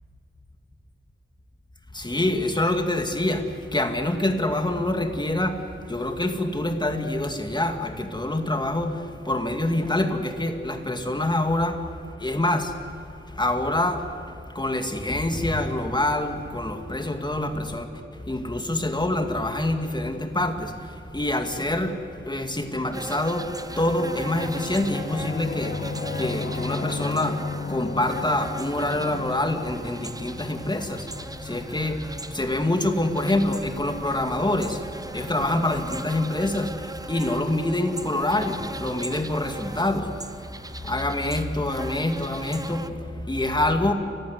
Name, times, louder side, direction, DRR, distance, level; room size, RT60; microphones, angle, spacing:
voice 1, 1.9-11.8 12.2-12.7 13.4-17.9 18.3-22.0 22.3-40.3 40.8-43.9, left 1 dB, 20° left, 6 dB, 2.2 m, -26 dB
sound 1, 22.9-42.9, right 2 dB, 15° right, 0.9 m, -39 dB
Singing / Musical instrument, 23.3-32.4, left 4 dB, 55° left, 0.7 m, -35 dB
29.0 x 15.5 x 9.6 m, 2.8 s
wide cardioid pair, 100°, 21 cm